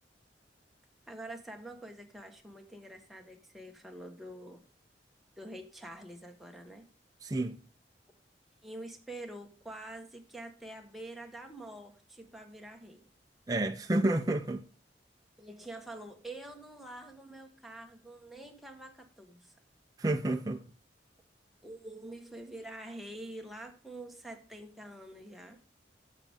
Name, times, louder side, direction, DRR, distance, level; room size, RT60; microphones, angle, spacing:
voice 1, 1.1-4.6 5.4-6.8 8.6-13.1 15.4-19.5 21.6-25.6, right 1 dB, ahead, 1.4 m, -46 dB
voice 2, 7.2-7.6 13.5-14.6 20.0-20.6, right 2 dB, 20° right, 0.5 m, -30 dB
12.0 x 7.5 x 3.6 m
head